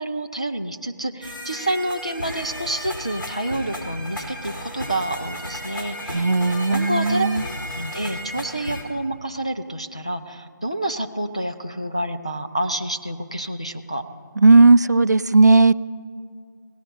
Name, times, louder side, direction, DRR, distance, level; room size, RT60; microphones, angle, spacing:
voice 1, 0.0-6.3 6.7-7.3 7.7-14.0, right 1 dB, 20° left, 5 dB, 0.3 m, -28 dB
sound 1, 1.2-8.8, equal, 90° left, 4.1 m, -34 dB
voice 2, 6.1-7.4 14.4-15.7, right 3 dB, 60° right, 17 dB, 0.3 m, -15 dB
17.0 x 13.0 x 5.5 m, 2.2 s
figure-of-eight pair, 175°, 11 cm